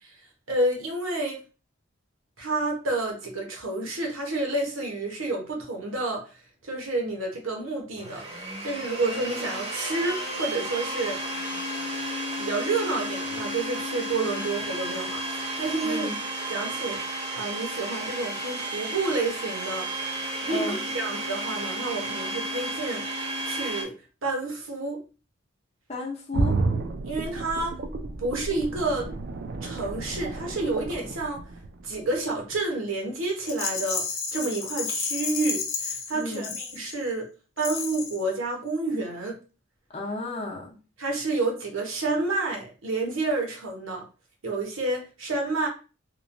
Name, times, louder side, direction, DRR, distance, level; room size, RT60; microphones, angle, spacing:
voice 1, 0.5-1.4 2.4-6.2 6.6-11.2 12.4-15.2 15.6-16.1 16.5-19.9 20.4-23.0 23.5-23.9 24.2-25.0 27.0-27.8 28.2-29.1 29.6-31.4 31.8-34.0 34.3-37.2 37.6-39.3 41.0-44.0 44.4-45.7, right 2 dB, 70° right, 1 dB, 0.9 m, -29 dB
Domestic sounds home sounds, 8.0-23.8, right 1 dB, 30° right, 0.7 m, -33 dB
voice 2, 15.8-16.2 20.5-20.8 25.9-26.5 36.1-36.5 39.9-40.7, left 2 dB, 30° left, 0 dB, 0.6 m, -33 dB
sound 1, 26.3-32.1 32.5-32.6, right 3 dB, 50° right, 0.4 m, -31 dB
Rattle, 33.5-37.1 37.6-38.3, left 5 dB, 75° left, 0.6 m, -32 dB
2.9 x 2.2 x 2.5 m, 0.34 s
head